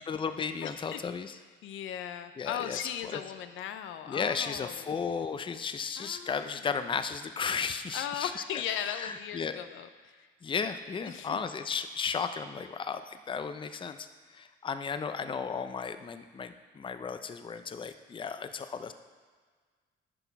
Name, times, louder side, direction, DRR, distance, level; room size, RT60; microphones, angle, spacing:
voice 1, 0.0-1.4 2.4-2.8 3.0-3.2 4.1-8.3 8.8-9.6 10.4-14.1 14.3-18.9, left 6 dB, 25° left, 10 dB, 0.5 m, -34 dB
voice 2, 0.6-1.0 1.6-4.9 6.0-6.6 7.9-10.3 11.1-11.4, left 10 dB, 80° left, 10 dB, 0.5 m, -38 dB
9.9 x 5.9 x 4.6 m, 1.5 s
cardioid pair, 90°, 20 cm